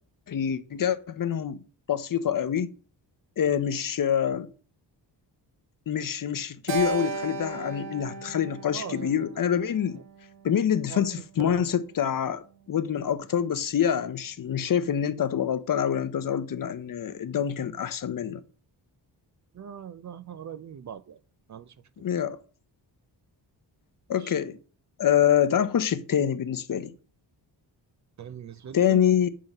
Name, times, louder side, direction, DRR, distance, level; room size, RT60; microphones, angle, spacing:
voice 1, 0.3-1.6 1.9-2.7 3.4-4.5 5.9-10.0 10.4-18.4 22.0-22.4 24.1-24.6 25.0-26.9 28.7-29.3, left 9 dB, 50° left, 0.7 m, -26 dB
Keyboard (musical), 6.7-11.1, right 5 dB, 75° right, 1.3 m, -36 dB
voice 2, 8.7-9.3 9.9-10.0 10.9-11.7 19.5-21.2 21.5-21.8 24.2-24.4 28.2-29.1, right 7 dB, 45° right, 0.4 m, -40 dB
7.2 x 3.7 x 5.3 m
wide cardioid pair, 115°, 44 cm